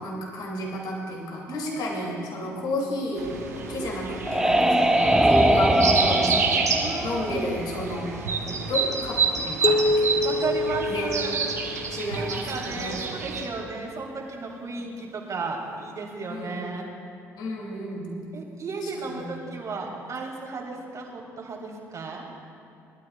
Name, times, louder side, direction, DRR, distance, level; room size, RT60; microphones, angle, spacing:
voice 1, 0.0-3.2 3.5-6.5 7.0-8.1 8.7-10.4 10.9-11.1 11.9-13.0 14.8-14.9 16.3-16.6 17.4-18.1 18.8-19.3, left 1 dB, 60° left, -1 dB, 2.9 m, -32 dB
voice 2, 1.5-2.5 6.8-7.5 9.6-11.3 12.2-16.8 18.3-22.3, right 4 dB, 40° right, -1 dB, 2.6 m, -34 dB
sound 1, 3.2-13.5, right 5 dB, 85° right, 1.1 m, -29 dB
sound 2, 3.7-8.3, right 1 dB, 5° right, 1.0 m, -22 dB
sound 3, 9.6-12.0, left 2 dB, 35° left, 0.8 m, -26 dB
21.0 x 12.5 x 2.5 m, 2.5 s
figure-of-eight pair, 50°, 8 cm